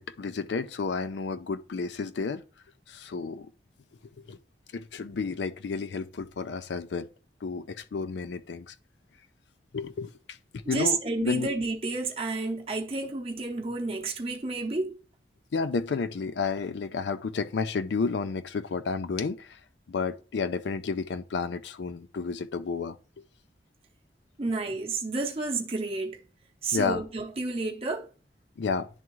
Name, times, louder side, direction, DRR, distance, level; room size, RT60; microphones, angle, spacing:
voice 1, 0.0-2.4 2.9-3.5 4.2-4.4 4.7-7.1 7.4-8.7 9.7-10.1 10.5-11.5 15.5-19.6 19.9-23.0 26.7-27.0 28.6-28.9, left 4 dB, 80° left, 0.4 m, -31 dB
voice 2, 10.7-15.0 24.4-26.2 26.6-28.1, right 3 dB, 30° right, 0.8 m, -30 dB
10.5 x 3.6 x 3.0 m
head